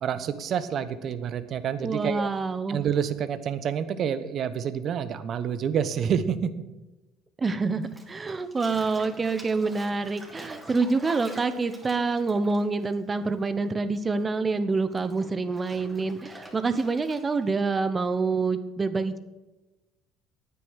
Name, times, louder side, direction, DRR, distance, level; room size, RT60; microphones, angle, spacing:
voice 1, 0.0-2.3 2.7-6.5, right 8 dB, 50° right, 12 dB, 1.0 m, -28 dB
voice 2, 1.8-2.8 7.4-19.2, right 4 dB, 30° right, 11 dB, 1.1 m, -27 dB
Bathtub (filling or washing), 7.8-13.7 13.9-17.5, right 1 dB, 10° right, 3.2 m, -46 dB
9.7 x 9.2 x 6.5 m, 1.1 s
hypercardioid pair, 65°, 0 cm